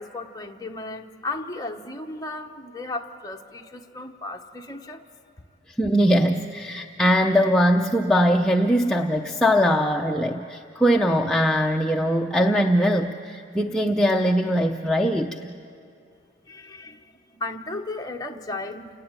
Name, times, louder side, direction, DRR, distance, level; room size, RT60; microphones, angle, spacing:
voice 1, 0.0-5.0 16.5-17.1 17.3-18.9, left 2 dB, 20° left, 3 dB, 1.1 m, -35 dB
voice 2, 5.8-15.5, equal, 5° left, 0 dB, 0.6 m, -21 dB
28.5 x 18.5 x 8.9 m, 2.4 s
head